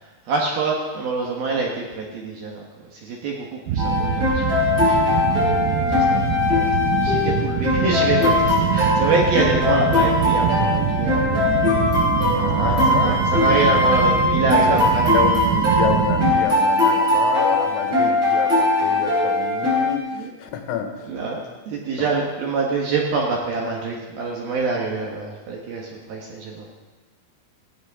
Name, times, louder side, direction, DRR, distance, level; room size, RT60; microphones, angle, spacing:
voice 1, 0.3-2.7 3.0-3.5 3.7-5.2 5.7-12.0 12.6-15.1 20.2-20.3 21.1-26.7, right 3 dB, 65° right, -1 dB, 2.5 m, -26 dB
sound 1, 3.7-16.4, right 9 dB, 80° right, 3.5 m, -24 dB
sound 2, 3.8-20.0, left 2 dB, 25° right, 4.8 m, -20 dB
voice 2, 12.3-13.4 14.5-14.8 15.1-21.1 22.0-22.1, left 8 dB, 80° left, 5 dB, 3.9 m, -29 dB
17.5 x 15.5 x 3.7 m, 1.2 s
omnidirectional pair, 6.0 m